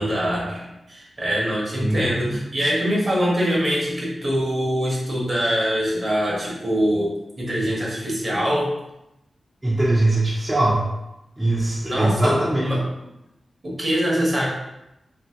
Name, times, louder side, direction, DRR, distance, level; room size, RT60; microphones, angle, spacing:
voice 1, 0.0-7.1 7.4-8.7 11.8-12.9 13.6-14.5, equal, 45° right, -5 dB, 1.1 m, -23 dB
voice 2, 1.8-2.4 9.6-10.8 11.4-12.6, right 1 dB, 20° right, -7 dB, 0.7 m, -21 dB
2.8 x 2.6 x 2.8 m, 0.90 s
cardioid pair, 70°, 0 cm